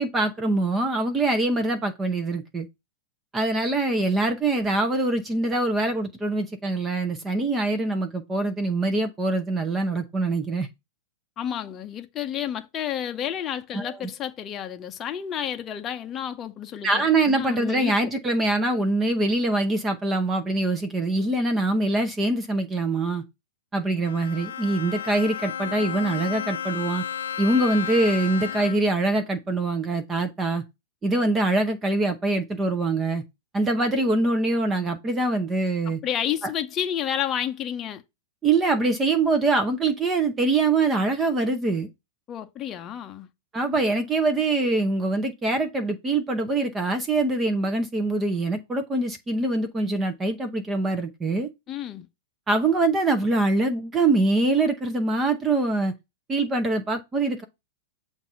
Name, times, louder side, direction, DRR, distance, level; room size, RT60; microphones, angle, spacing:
voice 1, 0.0-2.7 3.3-10.7 13.7-14.0 16.8-23.2 23.7-27.0 27.4-30.6 31.0-33.2 33.5-36.0 36.4-36.5 38.4-41.9 43.5-51.5 52.5-55.9 56.3-57.4, right 2 dB, 15° right, 0.8 m, -24 dB
voice 2, 11.4-18.1 35.9-38.0 42.3-43.3 51.7-52.1, left 10 dB, 30° left, 0.7 m, -31 dB
Bowed string instrument, 24.0-29.1, left 8 dB, 80° left, 0.4 m, -33 dB
6.9 x 2.6 x 5.5 m
hypercardioid pair, 120°, 0 cm